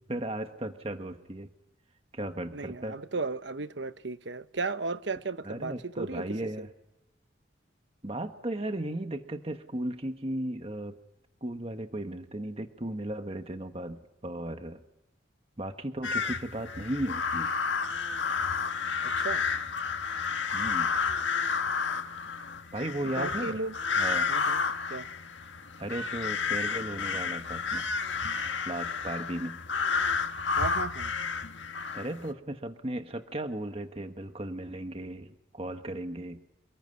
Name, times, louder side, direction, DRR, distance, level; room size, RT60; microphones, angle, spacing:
voice 1, 0.1-1.5 2.1-3.0 5.4-6.7 8.0-11.0 11.4-14.8 15.6-17.5 20.5-20.9 22.7-23.7 24.0-24.4 25.8-27.9 28.6-29.6 31.9-36.5, right 1 dB, 30° right, 1.4 m, -36 dB
voice 2, 2.5-6.2 6.6-6.7 19.2-19.5 23.2-23.8 24.3-24.6 24.9-25.1 30.6-31.1, right 3 dB, 75° right, 1.1 m, -35 dB
sound 1, 16.0-32.3, left 5 dB, 80° left, 1.6 m, -31 dB
28.0 x 21.0 x 9.7 m
head